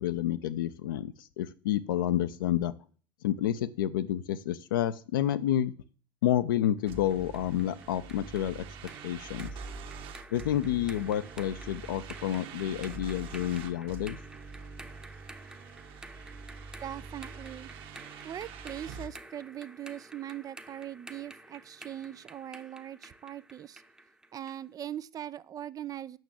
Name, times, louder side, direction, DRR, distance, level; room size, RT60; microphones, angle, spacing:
voice 1, 0.0-2.7 3.2-5.7 6.2-8.6 9.0-9.5 10.3-14.2, left 11 dB, 65° left, 13 dB, 0.8 m, -29 dB
sound 1, 6.9-24.7, right 1 dB, 5° right, 1.0 m, -51 dB
sound 2, 6.9-19.1, right 4 dB, 45° right, 1.4 m, -45 dB
voice 2, 16.8-17.7 18.2-23.8 24.3-26.2, right 11 dB, 30° right, 17 dB, 0.5 m, -41 dB
9.2 x 7.0 x 7.5 m, 0.41 s
figure-of-eight pair, 70°, 12 cm